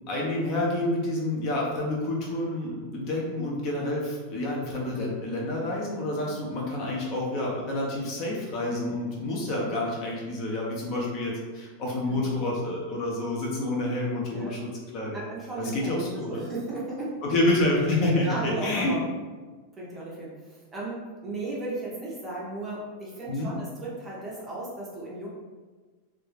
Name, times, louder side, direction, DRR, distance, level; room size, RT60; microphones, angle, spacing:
voice 1, 0.1-15.2 15.6-16.5 17.2-19.0 23.3-23.5, left 1 dB, 35° left, -2 dB, 0.6 m, -28 dB
voice 2, 15.1-17.2 18.2-19.0 19.8-25.3, right 2 dB, 15° right, -6 dB, 0.6 m, -35 dB
2.4 x 2.2 x 3.1 m, 1.4 s
supercardioid pair, 160°, 0 cm